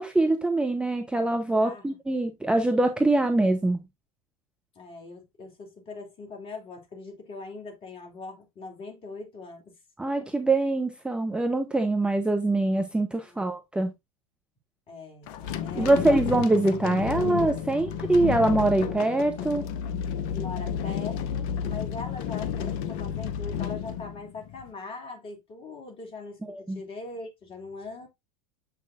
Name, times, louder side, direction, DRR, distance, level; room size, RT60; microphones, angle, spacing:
voice 1, 0.0-3.8 10.0-13.9 15.8-19.7 26.5-26.8, right 2 dB, 5° right, 0.7 m, -24 dB
voice 2, 4.7-9.8 10.1-10.2 13.2-13.5 14.9-15.3 15.6-16.2 20.3-28.1, left 3 dB, 30° left, 2.6 m, -41 dB
sound 1, 15.3-24.7, left 8 dB, 45° left, 0.8 m, -32 dB
7.3 x 6.0 x 2.5 m
figure-of-eight pair, 85°, 17 cm